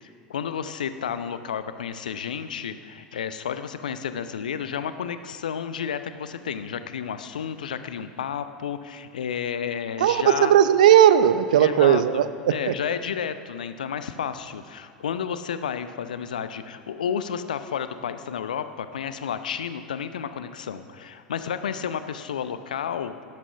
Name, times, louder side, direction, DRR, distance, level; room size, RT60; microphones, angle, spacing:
voice 1, 0.0-10.5 11.6-23.1, left 8 dB, 70° left, 11 dB, 0.6 m, -31 dB
voice 2, 10.0-12.7, right 10 dB, 65° right, 13 dB, 0.6 m, -17 dB
12.0 x 12.0 x 5.7 m, 2.3 s
figure-of-eight pair, 80°, 4 cm